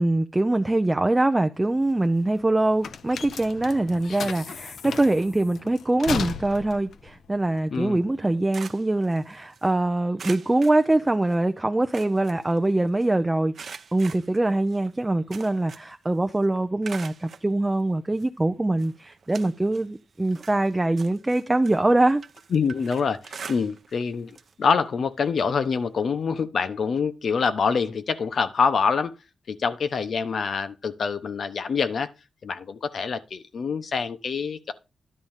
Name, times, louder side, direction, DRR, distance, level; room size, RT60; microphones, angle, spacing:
voice 1, 0.0-13.5 13.9-22.2, right 2 dB, 15° right, 0.6 m, -23 dB
sound 1, 1.6-8.3, left 7 dB, 80° left, 0.7 m, -36 dB
sound 2, 8.1-9.7 10.2-11.5 11.7-13.1 13.5-16.0 16.3-17.5 18.2-18.3 18.8-19.9 20.2-24.0 24.3-24.5 24.9-25.0 26.2-26.3, right 6 dB, 55° right, 0.7 m, -43 dB
voice 2, 22.5-29.1 29.5-32.1 32.4-34.7, left 5 dB, 60° left, 1.0 m, -26 dB
11.0 x 3.9 x 7.3 m
wide cardioid pair, 135°, 0 cm